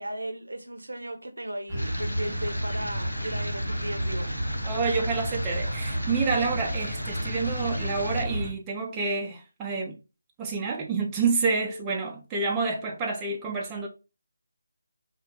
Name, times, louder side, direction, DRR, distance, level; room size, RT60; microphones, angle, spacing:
voice 1, 0.0-4.3, right 1 dB, 75° right, 0.6 m, -36 dB
sound 1, 1.7-8.5, equal, 5° left, 0.9 m, -31 dB
sound 2, 1.8-8.2, equal, 90° left, 0.5 m, -39 dB
voice 2, 4.6-10.0 10.4-13.9, right 4 dB, 15° right, 0.4 m, -28 dB
3.1 x 2.3 x 2.9 m
figure-of-eight pair, 155°, 0 cm